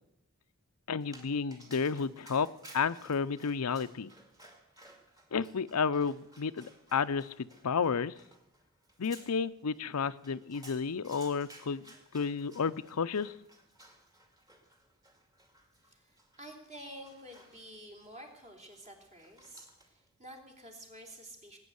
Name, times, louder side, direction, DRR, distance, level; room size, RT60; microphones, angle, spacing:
voice 1, 0.9-2.5 2.7-4.1 5.3-8.1 9.0-11.8 12.1-13.3, left 5 dB, 85° left, 13 dB, 0.6 m, -31 dB
Dog, 1.0-20.1, right 1 dB, 15° right, 2.2 m, -58 dB
voice 2, 15.8-21.6, right 1 dB, 35° right, 1 dB, 3.4 m, -50 dB
19.5 x 9.1 x 7.9 m, 0.82 s
head